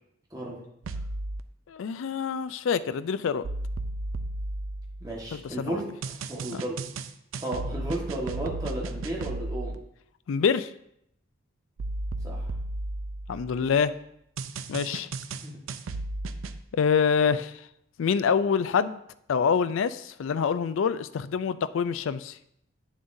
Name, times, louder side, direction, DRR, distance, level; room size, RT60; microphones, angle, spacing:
sound 1, 0.8-1.4 3.4-5.3 6.0-9.7 11.8-13.6 14.4-16.6, right 2 dB, 75° right, 0.4 m, -34 dB
voice 1, 1.7-3.4 5.3-5.8 6.5-6.6 10.3-10.7 13.3-13.9 14.7-15.1 16.7-17.7 18.0-19.0 19.3-22.4, left 6 dB, 70° left, 14 dB, 0.3 m, -26 dB
voice 2, 5.0-6.7 7.4-9.7 12.2-12.5 15.3-15.6, right 1 dB, 15° right, -3 dB, 1.4 m, -34 dB
8.7 x 7.2 x 2.6 m, 0.76 s
head